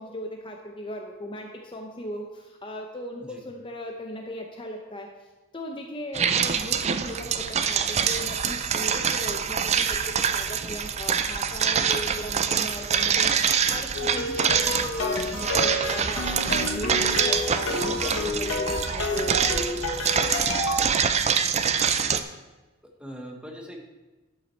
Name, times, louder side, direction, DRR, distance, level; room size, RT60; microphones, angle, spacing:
voice 1, 0.0-5.1 5.5-19.6, equal, 25° left, 2 dB, 0.7 m, -37 dB
sound 1, 6.1-22.2, right 7 dB, 30° right, 0.4 m, -25 dB
sound 2, 13.9-20.8, left 2 dB, 80° left, 1.5 m, -30 dB
voice 2, 21.7-22.2 23.0-23.8, equal, 5° right, 1 dB, 1.1 m, -42 dB
11.5 x 5.6 x 4.4 m, 1.2 s
head